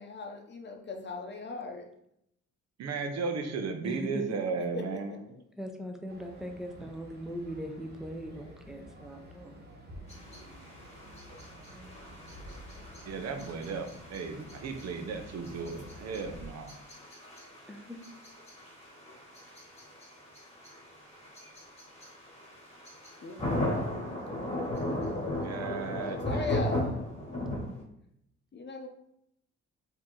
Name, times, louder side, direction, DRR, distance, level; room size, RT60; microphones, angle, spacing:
voice 1, 0.0-1.9 4.7-5.5 23.2-23.5 23.8-23.9 24.4-25.1 26.2-27.0 27.4-27.6 28.5-28.9, left 4 dB, 35° left, 3 dB, 0.8 m, -39 dB
voice 2, 2.8-5.2 13.1-16.8 25.4-26.5, right 5 dB, 60° right, 5 dB, 0.8 m, -35 dB
voice 3, 3.8-4.4 5.6-9.6 17.7-18.0, equal, ahead, 3 dB, 0.7 m, -40 dB
sound 1, 6.1-16.5, equal, 35° right, 1.4 m, -50 dB
sound 2, 10.1-27.8, left 1 dB, 20° left, 1.7 m, -37 dB
4.6 x 2.9 x 3.8 m, 0.75 s
cardioid pair, 90°, 30 cm